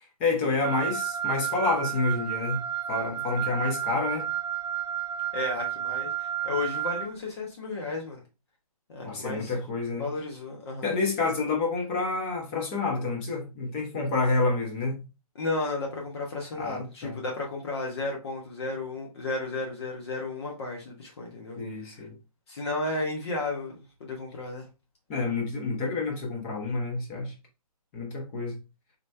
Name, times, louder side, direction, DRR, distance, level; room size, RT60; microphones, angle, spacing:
voice 1, 0.2-2.6 2.9-4.3 9.0-10.1 10.8-15.0 16.5-17.2 21.6-22.1 25.1-27.3 27.9-28.5, left 3 dB, 20° left, 1.0 m, -28 dB
Wind instrument woodwind instrument, 0.6-7.1, right 10 dB, 45° right, 0.7 m, -31 dB
voice 2, 5.3-8.2 8.9-9.5 10.0-11.0 15.3-21.6 22.5-24.7, left 2 dB, 45° left, 1.1 m, -33 dB
4.2 x 3.1 x 3.2 m
hypercardioid pair, 160°, 19 cm